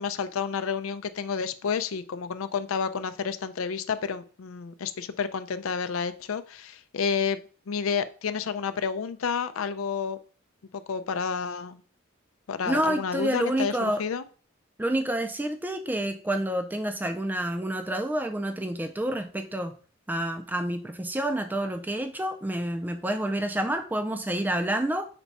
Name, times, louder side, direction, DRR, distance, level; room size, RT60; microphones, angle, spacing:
voice 1, 0.0-7.4 7.7-10.2 10.7-11.8 12.5-14.2, left 6 dB, 75° left, 10 dB, 0.4 m, -30 dB
voice 2, 12.7-14.0 14.8-19.8 20.1-25.1, right 1 dB, 10° right, 7 dB, 0.3 m, -28 dB
5.9 x 2.2 x 4.0 m, 0.39 s
head